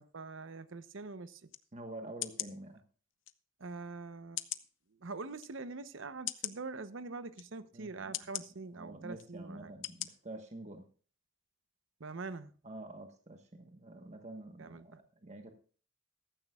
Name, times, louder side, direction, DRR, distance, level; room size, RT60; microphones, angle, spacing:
voice 1, 0.0-1.5 3.6-4.5 4.9-9.7 12.0-12.5 14.6-15.0, right 3 dB, 75° right, 0.8 m, -44 dB
sound 1, 1.5-1.6 2.2-2.5 3.3-3.4 4.4-4.7 5.4-5.5 6.3-6.6 7.3-7.5 8.1-8.5 9.2-9.3 9.8-10.1 10.5-10.6, left 14 dB, 70° left, 0.7 m, -39 dB
voice 2, 1.7-2.8 7.7-7.9 8.2-8.3 8.7-10.9 12.6-15.5, right 1 dB, 35° right, 1.2 m, -47 dB
15.0 x 13.5 x 2.4 m
head